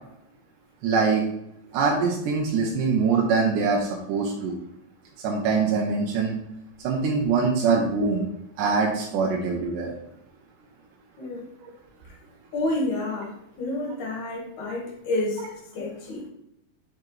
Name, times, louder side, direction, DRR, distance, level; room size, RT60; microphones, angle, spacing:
voice 1, 0.8-1.2 1.7-4.6 5.2-6.4 6.8-8.3 8.6-9.9 11.6-11.7, right 4 dB, 75° right, 0 dB, 2.2 m, -23 dB
voice 2, 11.2-11.5 12.5-15.5 15.7-16.3, left 2 dB, 60° left, 0 dB, 2.8 m, -29 dB
7.3 x 6.0 x 3.1 m, 0.81 s
omnidirectional pair, 4.1 m